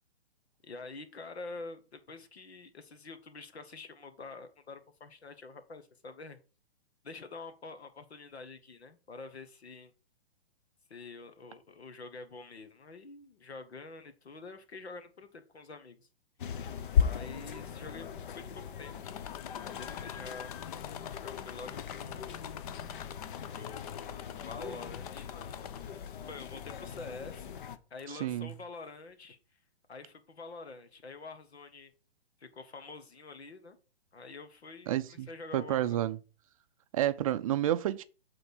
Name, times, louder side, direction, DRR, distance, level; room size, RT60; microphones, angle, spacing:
voice 1, 0.6-6.4 7.0-9.9 10.9-16.1 17.0-19.0 19.6-20.5 21.2-22.4 23.5-25.7 26.3-27.6 27.9-29.4 29.9-31.9 32.4-33.8 34.1-36.0, left 3 dB, 80° left, 1.6 m, -47 dB
sound 1, 16.4-27.8, left 7 dB, 55° left, 0.9 m, -37 dB
sound 2, 19.0-26.1 26.6-27.2 28.0-28.1 28.5-28.6, left 10 dB, 40° left, 0.6 m, -46 dB
voice 2, 28.2-28.5 34.9-36.2 36.9-38.0, right 12 dB, 35° right, 0.4 m, -30 dB
8.0 x 3.8 x 6.3 m
hypercardioid pair, 130°, 31 cm